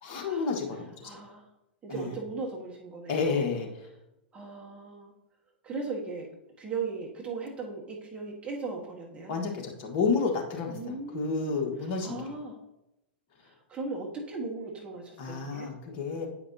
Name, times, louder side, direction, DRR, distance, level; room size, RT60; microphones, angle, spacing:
voice 1, 0.0-1.2 1.9-2.2 3.1-3.9 9.3-12.3 15.2-16.3, left 4 dB, 45° left, 1 dB, 1.5 m, -31 dB
voice 2, 1.0-1.4 1.8-3.4 4.3-5.1 5.6-6.3 6.6-9.3 10.7-11.6 12.0-12.6 13.7-15.7, right 4 dB, 20° right, -2 dB, 1.5 m, -37 dB
8.9 x 5.1 x 2.8 m, 0.89 s
hypercardioid pair, 105°, 6 cm